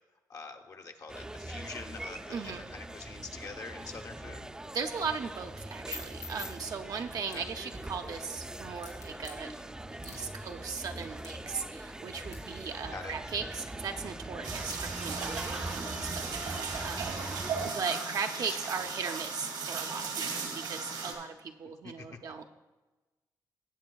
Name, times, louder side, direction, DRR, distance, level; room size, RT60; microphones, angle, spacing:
voice 1, 0.3-4.5 7.3-7.5 12.9-13.1 18.3-18.9 21.6-22.1, left 4 dB, 55° left, 4 dB, 0.9 m, -45 dB
sound 1, 1.1-17.7, right 1 dB, 10° right, 0.4 m, -42 dB
voice 2, 2.3-2.6 4.7-9.8 10.0-17.4 17.6-22.4, right 5 dB, 55° right, 5 dB, 0.5 m, -38 dB
sound 2, 5.5-14.8, left 6 dB, 70° left, 3.4 m, -52 dB
sound 3, 14.4-21.1, right 5 dB, 90° right, 1.7 m, -36 dB
16.5 x 7.3 x 2.3 m, 1.2 s
cardioid pair, 90°, 7 cm